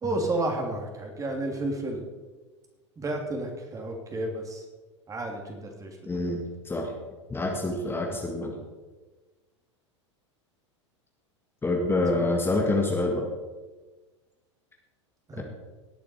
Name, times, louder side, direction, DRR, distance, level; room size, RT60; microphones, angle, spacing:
voice 1, 0.0-2.0 3.0-4.6 5.1-6.3 12.1-12.3 15.3-15.4, right 2 dB, 20° right, 2 dB, 2.8 m, -32 dB
voice 2, 6.1-6.9 7.3-8.6 11.6-13.3 15.3-15.4, left 2 dB, 15° left, 1 dB, 1.9 m, -27 dB
18.0 x 8.6 x 4.4 m, 1.2 s
figure-of-eight pair, 90°, 16 cm